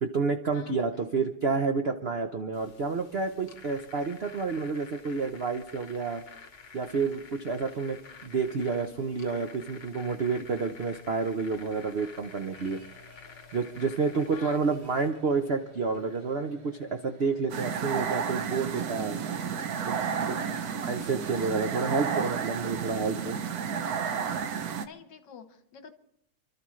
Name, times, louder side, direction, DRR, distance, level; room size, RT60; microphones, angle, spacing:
voice 1, 0.0-6.2 6.7-8.0 8.2-12.8 13.5-19.2 19.9-20.3 20.8-23.4, right 4 dB, 80° right, 5 dB, 0.5 m, -29 dB
voice 2, 0.5-0.9 14.3-14.6 20.0-20.8 24.8-25.9, left 7 dB, 60° left, 8 dB, 1.6 m, -48 dB
sound 1, 2.5-15.1, left 5 dB, 40° left, 1.3 m, -50 dB
sound 2, 11.5-22.9, left 2 dB, 30° right, 5.7 m, -54 dB
sound 3, 17.5-24.9, right 7 dB, 60° right, 1.0 m, -32 dB
28.5 x 12.5 x 3.2 m, 0.74 s
omnidirectional pair, 2.3 m